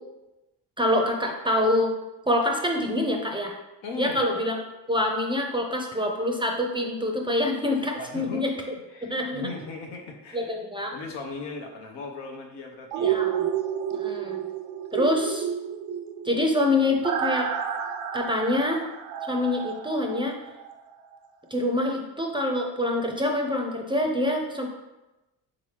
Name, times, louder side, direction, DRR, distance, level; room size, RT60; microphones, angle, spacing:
voice 1, 0.8-1.9 2.3-3.6 4.0-4.6 4.9-8.5 9.0-9.5 10.3-10.9 13.0-13.4 13.9-14.4 14.9-15.5 16.2-17.5 18.1-18.8 19.2-20.4 21.5-24.7, left 1 dB, 10° right, 2 dB, 0.5 m, -25 dB
voice 2, 3.8-4.2 8.0-8.4 8.9-10.6 10.9-13.2, left 3 dB, 75° left, 1 dB, 0.8 m, -38 dB
sound 1, 12.9-20.8 21.1-21.2, right 8 dB, 80° right, 0.5 m, -30 dB
3.6 x 2.9 x 3.2 m, 1.0 s
supercardioid pair, 60°, 43 cm